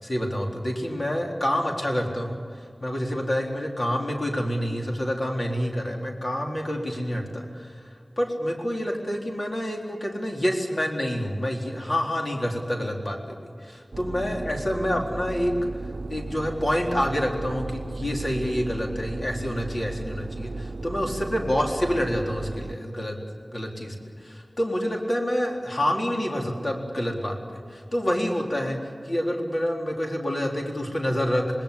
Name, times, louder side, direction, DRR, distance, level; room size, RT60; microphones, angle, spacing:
voice 1, 0.0-7.9 8.2-13.2 13.4-15.5 15.8-23.2 23.5-31.6, equal, 50° left, 0 dB, 4.0 m, -28 dB
sound 1, 13.9-22.8, right 3 dB, 80° right, 0.7 m, -35 dB
27.0 x 19.5 x 8.5 m, 2.2 s
wide cardioid pair, 65°, 0 cm